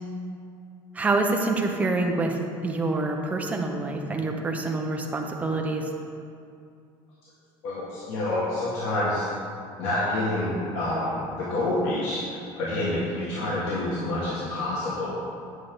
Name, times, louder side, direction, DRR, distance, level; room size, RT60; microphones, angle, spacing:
voice 1, 0.9-5.9, right 2 dB, 15° right, 2 dB, 0.7 m, -26 dB
voice 2, 7.6-9.3 9.8-12.2 12.6-15.2, left 1 dB, 90° left, -8 dB, 1.8 m, -27 dB
10.0 x 6.4 x 3.8 m, 2.5 s
cardioid pair, 170°, 11 cm